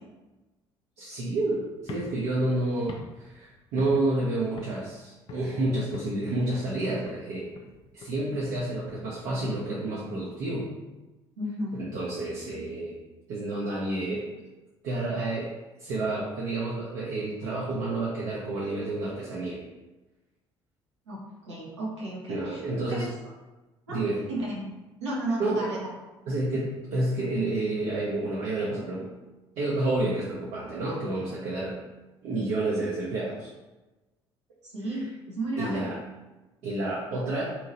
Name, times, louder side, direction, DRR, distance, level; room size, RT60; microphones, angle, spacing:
voice 1, 1.0-7.5 7.9-10.7 11.7-13.0 13.3-14.3 14.8-15.5 15.8-19.6 22.3-23.1 23.9-24.2 25.4-25.8 26.3-29.1 29.6-31.8 32.2-33.5 35.6-36.0 36.6-37.4, right 2 dB, 55° right, -5 dB, 0.6 m, -29 dB
sound 1, 1.8-4.2 4.6-4.9 5.3-6.2 6.5-6.8 7.1-10.2, left 3 dB, 35° left, 0.4 m, -46 dB
voice 2, 11.4-11.8 21.1-22.6 22.9-23.1 23.9-24.0 24.3-24.7 25.0-25.9 34.6-35.9, right 1 dB, 80° right, -7 dB, 0.9 m, -33 dB
2.8 x 2.7 x 2.6 m, 1.1 s
figure-of-eight pair, 50°, 15 cm